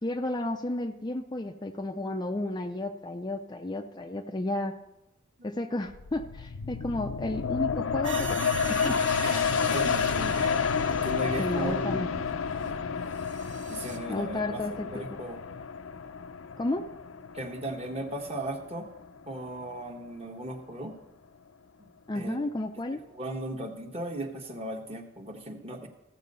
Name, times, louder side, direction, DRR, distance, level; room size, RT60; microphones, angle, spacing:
voice 1, 0.0-4.7 5.4-8.5 8.8-8.9 11.4-12.1 14.1-14.9 16.6-16.8 22.1-23.0, left 1 dB, 20° left, 6 dB, 0.4 m, -32 dB
sound 1, 5.9-19.2 19.6-19.7, left 6 dB, 80° left, 0.6 m, -30 dB
sound 2, 8.0-11.8 12.7-12.8 13.1-14.0, right 6 dB, 65° right, 1.6 m, -40 dB
voice 2, 9.2-10.3 10.9-12.3 12.6-12.8 13.7-15.4 17.3-18.9 19.3-20.9 22.1-22.5 23.1-25.9, right 1 dB, 30° right, 4 dB, 1.2 m, -37 dB
14.5 x 7.6 x 5.4 m, 0.96 s
head